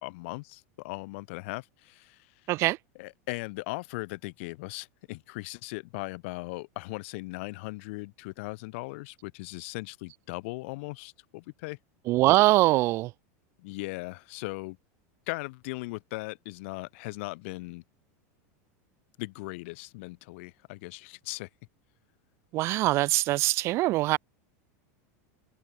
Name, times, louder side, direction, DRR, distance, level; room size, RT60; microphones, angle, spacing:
voice 1, 0.0-2.3 3.0-11.8 13.6-14.8 15.3-17.8 19.2-21.5, left 24 dB, 50° left, 4.2 m, -38 dB
voice 2, 2.5-2.8 12.1-13.1 22.5-24.2, right 18 dB, 30° right, 3.5 m, -23 dB
supercardioid pair, 180°, 9 cm